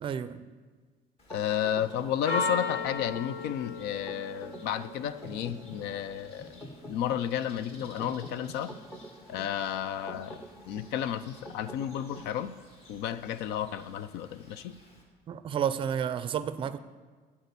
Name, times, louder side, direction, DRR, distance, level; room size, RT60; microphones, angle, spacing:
voice 1, 0.0-0.4 15.3-16.8, right 8 dB, 30° right, 0.4 m, -31 dB
Church bell, 1.2-15.0, left 4 dB, 35° left, 1.9 m, -41 dB
voice 2, 1.3-6.6 6.9-8.7 9.3-10.4 10.7-12.5 12.9-14.7, left 10 dB, 85° left, 0.5 m, -32 dB
sound 1, 1.3-12.4, equal, 10° left, 0.7 m, -48 dB
12.5 x 4.4 x 8.2 m
cardioid pair, 170°, 17 cm